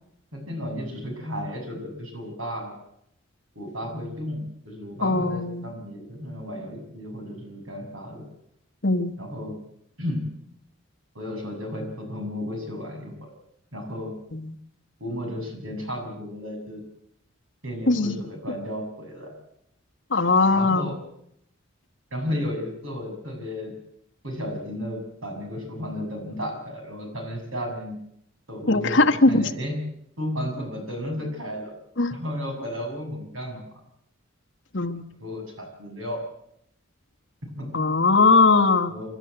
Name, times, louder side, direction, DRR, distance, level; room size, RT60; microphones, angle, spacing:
voice 1, 0.3-2.7 3.5-8.3 9.2-9.6 10.0-10.2 11.1-13.3 13.7-14.1 15.0-16.8 17.6-19.3 20.5-21.0 22.1-23.7 24.2-28.0 28.5-29.8 30.2-31.7 32.1-33.6 35.2-36.2 37.5-37.7 38.9-39.1, equal, 85° right, 2 dB, 7.5 m, -33 dB
voice 2, 5.0-5.7 8.8-9.1 17.9-18.2 20.1-20.9 28.7-29.4 32.0-32.1 34.7-35.0 37.7-38.9, left 3 dB, 60° left, 4 dB, 1.4 m, -20 dB
29.5 x 12.5 x 8.1 m, 0.75 s
head